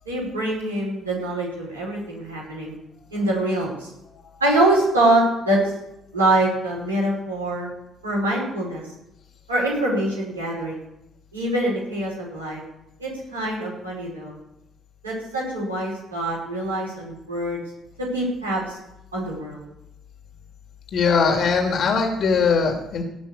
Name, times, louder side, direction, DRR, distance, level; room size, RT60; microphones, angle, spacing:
voice 1, 0.1-2.8 3.1-3.9 4.4-5.6 6.1-7.7 8.0-8.8 9.5-10.8 11.3-12.6 13.0-14.4 15.0-17.6 18.1-18.8 19.1-19.7, right 1 dB, 90° right, -5 dB, 5.5 m, -24 dB
voice 2, 20.9-23.0, left 5 dB, 55° left, 3 dB, 2.8 m, -20 dB
17.5 x 6.2 x 8.6 m, 0.86 s
figure-of-eight pair, 45°, 0 cm